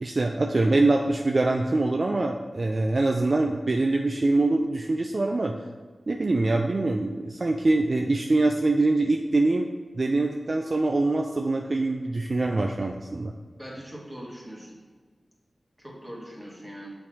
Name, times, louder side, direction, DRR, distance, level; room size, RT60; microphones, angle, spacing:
voice 1, 0.0-5.6 6.1-9.7 10.0-13.3, right 2 dB, 55° right, 2 dB, 0.3 m, -24 dB
voice 2, 13.6-14.8 15.8-16.9, equal, 20° right, -5 dB, 1.6 m, -41 dB
7.4 x 4.5 x 2.8 m, 1.5 s
wide cardioid pair, 70°, 0 cm